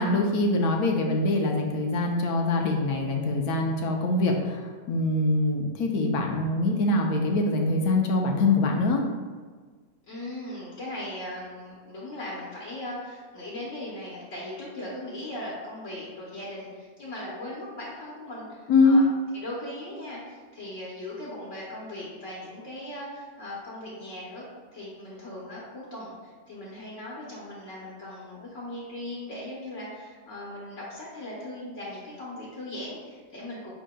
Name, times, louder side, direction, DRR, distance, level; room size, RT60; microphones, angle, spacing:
voice 1, 0.0-9.0 18.7-19.0, left 2 dB, 90° left, 2 dB, 1.1 m, -24 dB
voice 2, 10.1-19.1 19.3-33.7, left 1 dB, 60° left, -6 dB, 1.2 m, -38 dB
8.2 x 2.8 x 2.2 m, 1.5 s
omnidirectional pair, 1.5 m